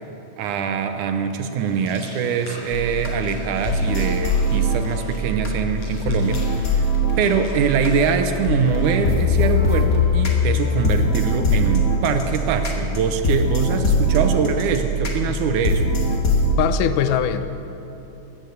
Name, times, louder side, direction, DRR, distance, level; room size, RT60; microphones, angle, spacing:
voice 1, 0.4-6.9 7.2-15.9, right 6 dB, 80° right, 7 dB, 2.3 m, -23 dB
sound 1, 1.6-9.1, left 1 dB, 75° left, 5.5 m, -43 dB
sound 2, 2.7-16.5, left 1 dB, 40° left, 1.5 m, -22 dB
voice 2, 16.6-17.5, left 10 dB, 90° left, 11 dB, 2.3 m, -21 dB
14.5 x 10.5 x 8.0 m, 2.9 s
omnidirectional pair, 3.6 m